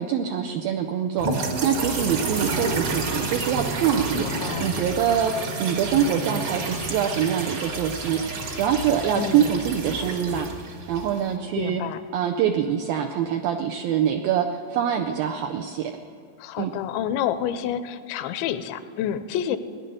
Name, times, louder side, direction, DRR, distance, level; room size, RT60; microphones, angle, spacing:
voice 1, 0.0-4.3 4.6-5.3 5.6-11.8 12.1-15.9 16.6-16.7, right 9 dB, 90° right, 4 dB, 2.0 m, -25 dB
sound 1, 1.2-11.3, right 3 dB, 55° right, 1.5 m, -30 dB
voice 2, 4.1-4.7 9.1-9.6 11.6-12.0 16.4-19.6, left 10 dB, 85° left, 11 dB, 3.0 m, -29 dB
17.5 x 10.5 x 7.7 m, 2.4 s
omnidirectional pair, 5.0 m